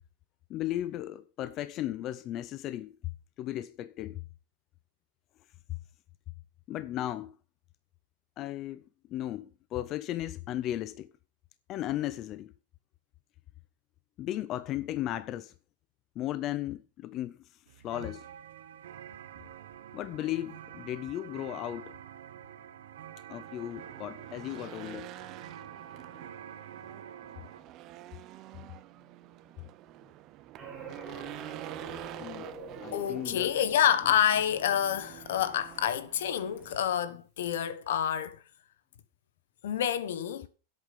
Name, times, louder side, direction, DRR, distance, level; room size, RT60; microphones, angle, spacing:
voice 1, 0.5-3.1 3.4-4.2 6.7-7.4 8.4-8.8 9.1-11.1 11.7-12.5 14.2-15.5 16.2-18.3 19.9-22.0 23.3-25.1 26.1-26.3 32.2-32.5 32.8-33.5, left 13 dB, 30° left, 0.5 m, -36 dB
sound 1, 17.7-27.6, right 10 dB, 80° right, 1.2 m, -47 dB
Race car auto racing / Engine, 23.3-37.0, right 14 dB, 30° right, 0.6 m, -48 dB
sound 2, 30.6-35.9, right 4 dB, 15° right, 4.0 m, -46 dB
voice 2, 32.9-38.4 39.6-40.5, left 9 dB, 75° left, 1.2 m, -28 dB
10.5 x 8.2 x 5.2 m
supercardioid pair, 165°, 0 cm